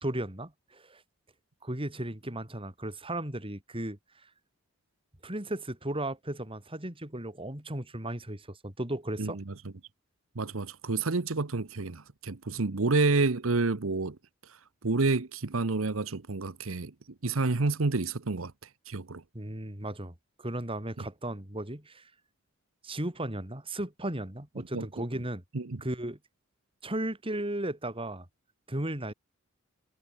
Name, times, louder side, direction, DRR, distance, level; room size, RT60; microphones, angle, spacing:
voice 1, 0.0-1.0 1.6-4.0 5.2-9.4 19.3-22.1 22.8-25.4 25.8-26.2 26.8-28.3 28.7-29.1, right 1 dB, 25° right, 3.8 m, -35 dB
voice 2, 9.2-9.5 10.3-14.2 14.4-16.9 17.2-18.5 18.9-19.2 21.0-21.1 24.6-24.9 25.5-25.8, right 3 dB, 80° right, 1.0 m, -29 dB
head